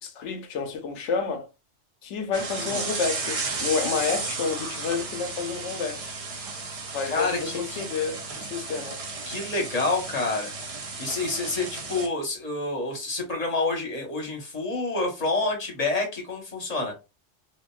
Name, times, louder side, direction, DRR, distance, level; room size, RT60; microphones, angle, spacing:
voice 1, 0.0-1.5 2.0-6.1 6.9-9.0, left 5 dB, 75° left, 0.9 m, -30 dB
sound 1, 2.3-12.1, right 4 dB, 50° right, 0.4 m, -34 dB
voice 2, 7.0-7.8 9.3-10.5 11.0-16.9, left 3 dB, 35° left, 1.0 m, -28 dB
2.8 x 2.5 x 2.3 m
omnidirectional pair, 1.2 m